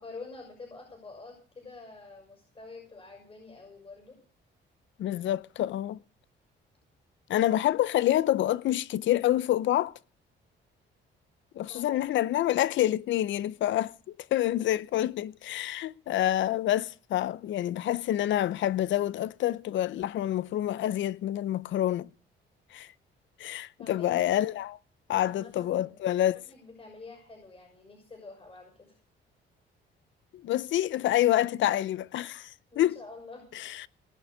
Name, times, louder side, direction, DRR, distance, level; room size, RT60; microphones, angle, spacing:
voice 1, 0.0-4.2 11.7-12.0 23.8-24.3 25.2-28.9 32.7-33.5, left 3 dB, 30° left, 6.3 m, -47 dB
voice 2, 5.0-6.0 7.3-9.9 11.5-22.1 22.7-22.9 23.4-24.8 25.1-26.4 30.3-33.0 33.5-33.9, left 13 dB, 70° left, 0.6 m, -27 dB
19.0 x 6.6 x 8.3 m
cardioid pair, 90°, 20 cm